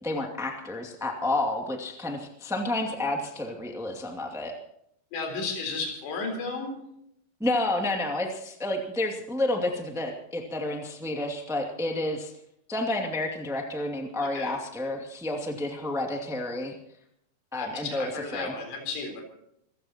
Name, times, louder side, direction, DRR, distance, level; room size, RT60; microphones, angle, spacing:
voice 1, 0.0-4.5 7.4-12.3 12.7-16.7 17.5-18.5, left 2 dB, 5° right, 1 dB, 0.3 m, -30 dB
voice 2, 5.1-6.7 14.2-14.6 17.6-19.2, left 4 dB, 75° left, 2 dB, 6.0 m, -33 dB
26.5 x 16.0 x 2.9 m, 0.73 s
omnidirectional pair, 5.0 m